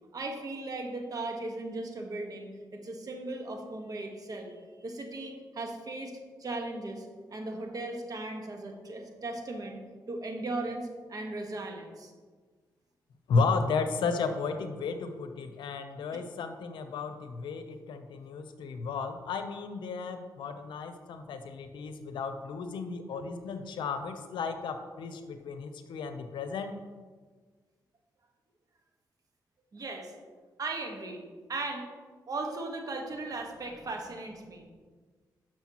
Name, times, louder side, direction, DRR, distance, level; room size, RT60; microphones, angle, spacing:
voice 1, 0.1-6.1 6.4-9.8 10.1-12.1 29.7-30.1 30.6-31.2 31.5-31.9 32.3-34.6, right 2 dB, 50° right, 2 dB, 1.3 m, -37 dB
voice 2, 13.3-26.8, left 4 dB, 90° left, 8 dB, 0.7 m, -33 dB
10.0 x 6.3 x 3.0 m, 1.5 s
cardioid pair, 80°, 8 cm